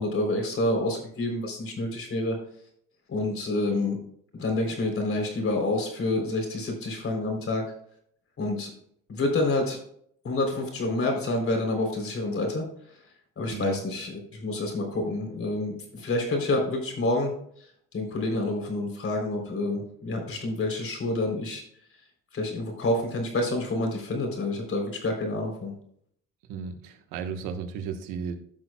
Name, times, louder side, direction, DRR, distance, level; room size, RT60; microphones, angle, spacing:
voice 1, 0.0-2.4 3.1-4.0 4.3-7.6 8.4-8.7 9.1-9.8 10.2-12.7 13.4-17.4 17.9-21.6 22.3-25.7, left 2 dB, 45° left, 2 dB, 3.7 m, -28 dB
voice 2, 13.5-13.8 26.5-28.4, right 6 dB, 90° right, 6 dB, 1.3 m, -34 dB
14.5 x 6.1 x 2.3 m, 0.64 s
cardioid pair, 95°, 31 cm